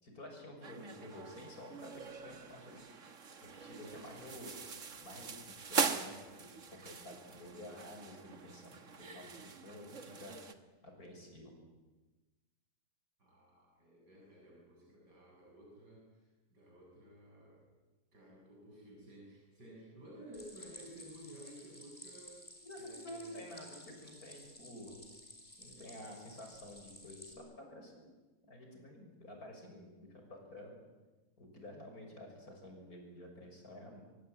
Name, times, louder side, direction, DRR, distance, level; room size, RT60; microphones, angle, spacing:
voice 1, 0.0-2.8 3.5-4.5 5.0-6.2 6.7-10.3 10.8-11.5 22.6-25.0 25.6-28.1 28.5-30.7 31.4-34.0, left 1 dB, 60° left, 2 dB, 7.0 m, -50 dB
sound 1, 0.6-10.5, right 5 dB, 50° right, 1.8 m, -42 dB
voice 2, 3.8-4.3 13.2-17.7 18.1-22.4 22.8-23.5 25.6-25.9, right 1 dB, 90° right, -3 dB, 7.9 m, -55 dB
Stream, 20.3-27.3, left 1 dB, 25° left, 6.0 m, -54 dB
25.0 x 23.0 x 9.4 m, 1.2 s
omnidirectional pair, 1.8 m